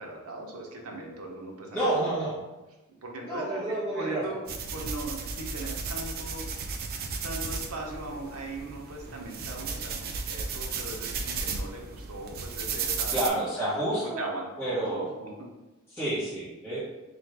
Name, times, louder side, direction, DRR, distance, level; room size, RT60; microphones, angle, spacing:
voice 1, 0.0-2.2 3.0-4.4 4.7-6.5 7.2-13.5 14.2-15.5 16.6-16.8, right 2 dB, 70° right, 0 dB, 0.7 m, -39 dB
voice 2, 1.7-2.4 3.2-4.2 9.0-9.1 13.1-14.3 14.6-15.0 15.9-16.8, right 1 dB, 10° left, -12 dB, 1.3 m, -29 dB
sound 1, 4.5-13.3, right 5 dB, 40° right, 0.3 m, -34 dB
3.2 x 2.5 x 3.3 m, 1.1 s
head